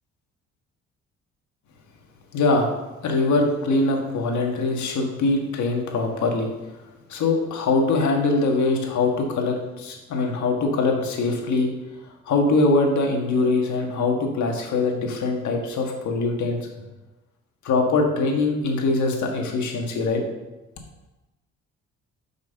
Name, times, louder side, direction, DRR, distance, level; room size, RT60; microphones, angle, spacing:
voice 1, 2.3-2.7 3.0-6.5 7.1-11.7 12.3-16.7 17.6-20.2, left 3 dB, 70° left, 2 dB, 1.6 m, -22 dB
6.1 x 5.6 x 5.4 m, 1.1 s
cardioid pair, 90°, 30 cm